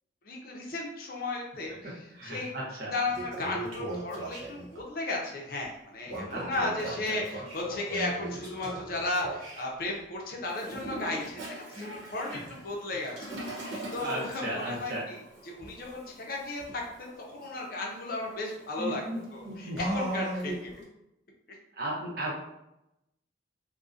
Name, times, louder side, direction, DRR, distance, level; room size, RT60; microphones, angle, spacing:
voice 1, 0.3-2.5 2.9-15.2 15.4-19.0 19.3-20.7, left 2 dB, 50° left, -1 dB, 0.5 m, -35 dB
voice 2, 1.7-2.9 6.3-6.8 7.1-7.2 12.2-12.4 14.0-15.0 18.8-19.2 19.6-19.8 21.8-22.4, right 1 dB, 50° right, -4 dB, 0.7 m, -36 dB
Toilet flush, 2.3-2.4 2.9-4.8 6.1-9.6 10.5-20.8, right 1 dB, 85° right, 0.8 m, -39 dB
2.6 x 2.1 x 2.4 m, 0.87 s
head